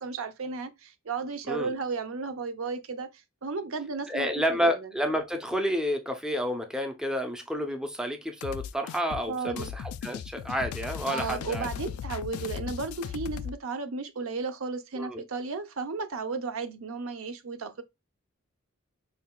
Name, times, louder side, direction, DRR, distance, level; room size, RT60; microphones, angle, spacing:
voice 1, 0.0-3.1 3.4-4.9 9.3-9.7 11.1-17.8, right 4 dB, 70° right, 0.6 m, -34 dB
voice 2, 4.1-11.7 15.0-15.2, equal, 5° right, 0.5 m, -30 dB
sound 1, 8.4-13.6, left 8 dB, 90° left, 0.3 m, -37 dB
5.5 x 2.4 x 2.2 m
head